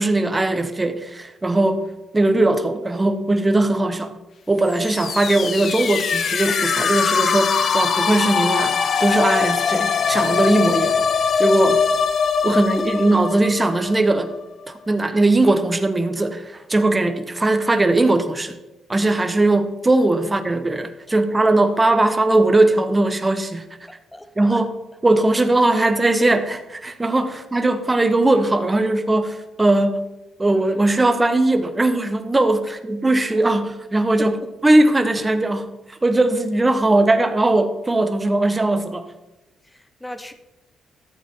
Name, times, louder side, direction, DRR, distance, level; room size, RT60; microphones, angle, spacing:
voice 1, 0.0-1.8 2.1-4.1 4.5-11.0 11.4-11.8 12.4-14.3 14.7-18.6 18.9-23.6 24.4-24.7 25.0-30.1 30.4-34.3 34.6-39.1, right 2 dB, 20° right, 1.1 m, -19 dB
sound 1, 4.7-14.4, left 6 dB, 55° left, 0.7 m, -22 dB
voice 2, 24.1-24.6 27.3-27.4 32.7-32.8 34.2-34.3 39.7-40.3, left 1 dB, 10° left, 1.1 m, -35 dB
13.5 x 8.4 x 3.7 m
cardioid pair, 90°, 0 cm